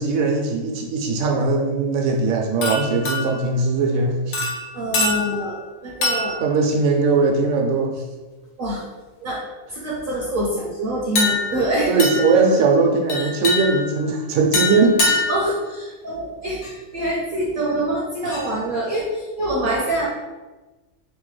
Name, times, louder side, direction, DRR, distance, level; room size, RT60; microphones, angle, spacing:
voice 1, 0.0-4.4 6.4-7.9 11.9-15.2, right 4 dB, 85° right, 2 dB, 1.0 m, -20 dB
sound 1, 2.6-3.5 4.3-5.6 6.0-6.6 7.1-7.3 11.2-11.7 12.0-12.4 13.1-14.0 14.5-15.5 16.6-16.7 18.2-18.5, left 2 dB, 90° left, 1.2 m, -24 dB
voice 2, 4.7-6.4 8.6-8.8 9.2-9.4 9.7-11.9 13.2-13.3 15.3-16.6 16.9-20.1, right 1 dB, 60° right, -3 dB, 0.6 m, -25 dB
3.1 x 2.2 x 3.1 m, 1.2 s
omnidirectional pair, 1.4 m